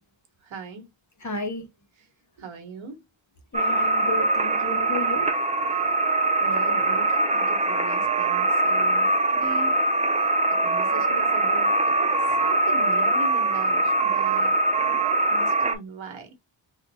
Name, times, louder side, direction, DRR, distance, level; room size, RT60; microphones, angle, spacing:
voice 1, 0.4-0.9 2.4-3.0 6.4-9.9 10.6-16.3, right 4 dB, 75° right, 1.4 m, -40 dB
voice 2, 1.2-1.7 3.5-5.2, left 2 dB, 40° left, 1.4 m, -32 dB
sound 1, 3.5-15.7, right 2 dB, 15° right, 0.5 m, -22 dB
3.3 x 2.4 x 4.1 m
wide cardioid pair, 105°, 47 cm